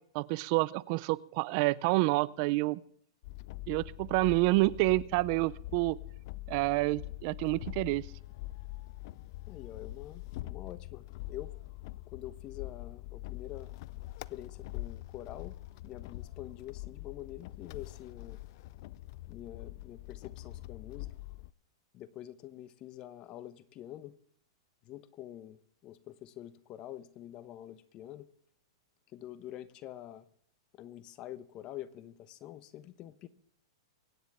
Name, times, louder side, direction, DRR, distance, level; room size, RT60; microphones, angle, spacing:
voice 1, 0.1-2.8 3.7-6.0 6.5-8.1, right 22 dB, 45° right, 0.5 m, -28 dB
sound 1, 3.2-21.5, left 18 dB, 55° left, 0.4 m, -44 dB
voice 2, 9.5-11.5 12.1-13.7 14.3-15.6 15.8-18.4 19.3-21.1 21.9-24.1 24.8-28.3 29.1-30.2 30.8-33.3, left 13 dB, 35° left, 1.1 m, -46 dB
24.5 x 9.8 x 3.6 m
hypercardioid pair, 130°, 3 cm